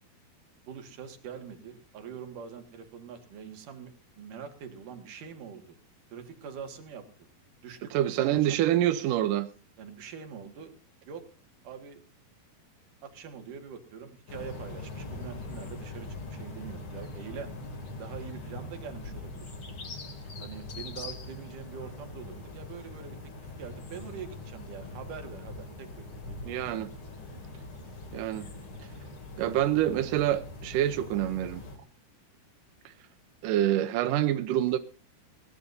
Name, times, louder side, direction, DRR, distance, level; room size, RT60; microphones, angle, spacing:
voice 1, 0.6-5.8 6.1-7.1 7.6-8.6 9.8-10.7 11.0-11.3 11.6-12.0 13.0-17.5 18.0-19.5 20.4-26.5, right 7 dB, 60° right, 6 dB, 3.2 m, -44 dB
voice 2, 7.9-9.5 26.5-26.9 28.1-28.5 29.4-31.6 33.4-34.8, right 12 dB, 75° right, 10 dB, 2.0 m, -26 dB
sound 1, 14.3-31.8, left 2 dB, 35° left, 3.0 m, -42 dB
22.0 x 17.5 x 2.7 m, 0.34 s
omnidirectional pair, 4.6 m